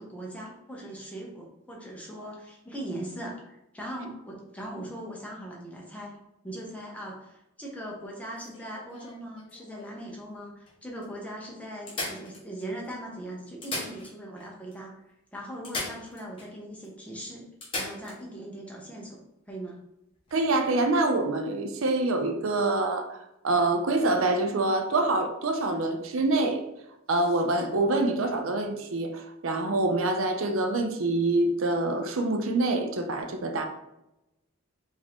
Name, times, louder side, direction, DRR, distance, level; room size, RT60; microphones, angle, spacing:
voice 1, 0.0-6.1 6.4-14.9 15.3-17.5 17.8-19.2 19.5-19.8, right 1 dB, 5° left, -3 dB, 0.8 m, -40 dB
sound 1, 8.4-10.0 10.7-10.8 11.0-11.1 11.9-12.9 13.5-14.5 14.7-14.8 15.6-16.5 16.8-16.9 17.6-18.2 20.2-20.3, left 2 dB, 25° left, 1.3 m, -37 dB
voice 2, 20.3-26.6 27.1-33.7, right 2 dB, 75° right, 6 dB, 0.5 m, -26 dB
5.0 x 2.7 x 3.5 m, 0.88 s
head